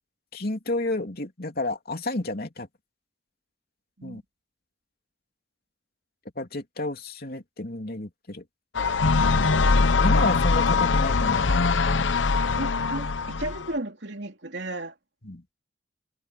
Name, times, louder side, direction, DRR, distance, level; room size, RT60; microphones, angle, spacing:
voice 1, 0.3-2.7 4.0-4.2 6.4-8.4 9.7-11.5 11.9-12.1 15.2-15.4, left 2 dB, 50° left, 3.1 m, -31 dB
sound 1, 8.7-13.7, left 4 dB, 75° left, 0.9 m, -22 dB
voice 2, 12.6-14.9, right 1 dB, 65° right, 3.0 m, -34 dB
head